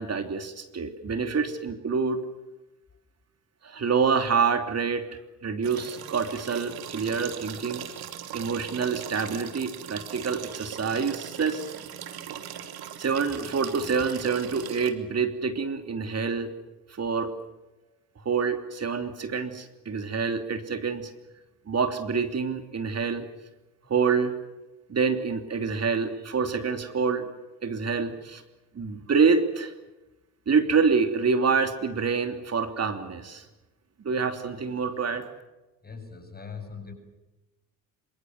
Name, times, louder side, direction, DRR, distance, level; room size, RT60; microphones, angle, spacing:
voice 1, 0.0-2.2 3.6-5.1 5.4-7.8 8.3-11.7 13.0-16.5 16.9-17.3 18.2-21.1 21.7-23.3 23.9-24.3 24.9-27.3 27.6-28.4 28.7-29.7 30.5-33.5 34.0-35.3, right 5 dB, 35° right, 7 dB, 3.2 m, -26 dB
sound 1, 5.6-14.9, right 10 dB, 55° right, 3.0 m, -39 dB
voice 2, 35.8-36.9, left 5 dB, 20° left, 6 dB, 7.8 m, -41 dB
26.5 x 25.0 x 7.9 m, 1.0 s
hypercardioid pair, 55°, 43 cm